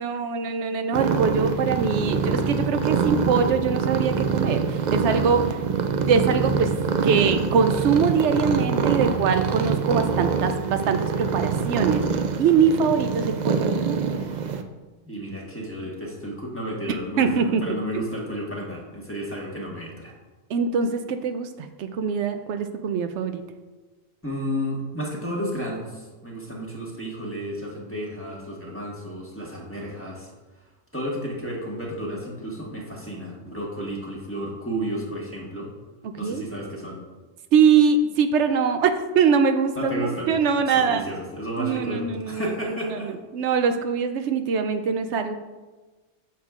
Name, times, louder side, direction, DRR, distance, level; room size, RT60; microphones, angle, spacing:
voice 1, 0.0-5.5 6.1-6.7 7.0-14.1 17.2-17.6 20.5-23.4 36.2-36.4 37.5-41.1 41.6-42.5 42.8-45.4, right 6 dB, 80° right, 8 dB, 0.9 m, -23 dB
sound 1, 0.9-14.6, right 5 dB, 55° right, 0.5 m, -25 dB
voice 2, 15.0-20.1 24.2-30.3 30.9-35.7 36.2-37.0 39.7-43.1, equal, 10° left, -3 dB, 1.3 m, -32 dB
8.7 x 7.0 x 2.4 m, 1.3 s
omnidirectional pair, 1.2 m